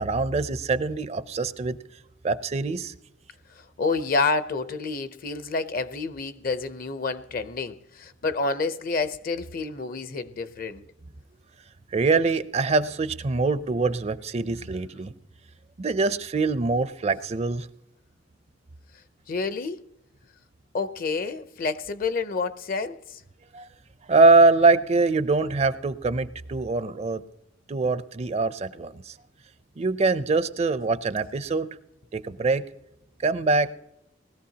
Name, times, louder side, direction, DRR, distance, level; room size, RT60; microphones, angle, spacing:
voice 1, 0.0-1.8 2.2-2.9 11.9-15.1 15.8-17.7 23.5-23.7 24.1-27.2 27.7-29.1 29.8-31.8 32.1-32.6 33.2-33.7, right 3 dB, 35° right, 0.4 m, -23 dB
voice 2, 3.8-10.8 19.3-19.8 20.7-23.2, left 4 dB, 50° left, 0.6 m, -29 dB
19.5 x 14.5 x 2.8 m
head